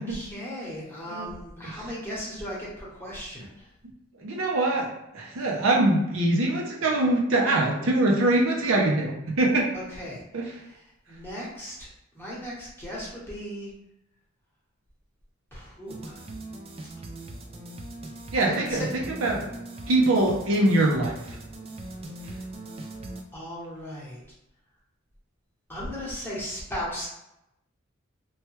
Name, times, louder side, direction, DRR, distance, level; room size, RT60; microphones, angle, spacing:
voice 1, 0.0-3.7 9.7-11.9 12.1-13.7 15.5-16.2 18.4-18.9 23.3-24.2 25.7-27.1, equal, 10° left, -7 dB, 1.0 m, -37 dB
voice 2, 4.2-4.9 5.1-9.7 10.3-10.4 18.3-19.5 19.9-21.1, right 2 dB, 70° right, -1 dB, 0.6 m, -23 dB
sound 1, 15.9-23.2, right 1 dB, 30° right, 0.3 m, -40 dB
3.1 x 2.2 x 3.0 m, 0.85 s
head